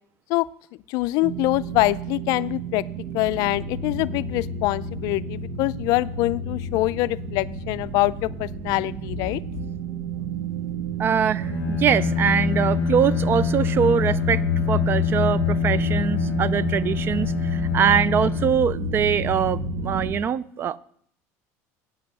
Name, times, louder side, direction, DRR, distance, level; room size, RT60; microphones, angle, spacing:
voice 1, 0.9-2.8 3.1-9.4, left 19 dB, 60° left, 17 dB, 0.4 m, -24 dB
sound 1, 1.2-20.1, equal, 70° right, 1.1 m, -30 dB
voice 2, 11.0-14.4 14.7-20.8, right 8 dB, 30° right, 20 dB, 0.4 m, -23 dB
Bowed string instrument, 11.3-19.3, left 6 dB, 25° left, 3.7 m, -26 dB
8.8 x 7.4 x 6.9 m, 0.63 s
cardioid pair, 140°, 7 cm